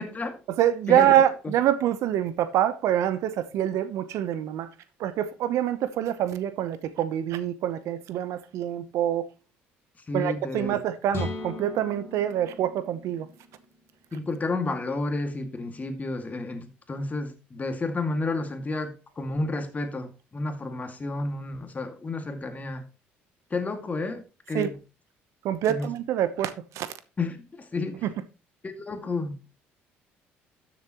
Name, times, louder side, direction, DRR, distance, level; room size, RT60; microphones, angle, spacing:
voice 1, 0.0-0.4 0.9-1.2 10.1-10.8 14.1-22.8 23.5-24.8 25.7-25.9 27.2-28.1 28.6-29.5, left 3 dB, 30° left, 2.2 m, -31 dB
voice 2, 0.6-4.7 5.0-9.3 10.1-13.3 24.5-24.7 25.4-26.9 28.0-28.1, right 11 dB, 70° right, 0.9 m, -25 dB
sound 1, 11.1-14.9, left 2 dB, 45° left, 2.7 m, -38 dB
13.0 x 7.1 x 3.0 m
hypercardioid pair, 65°, 5 cm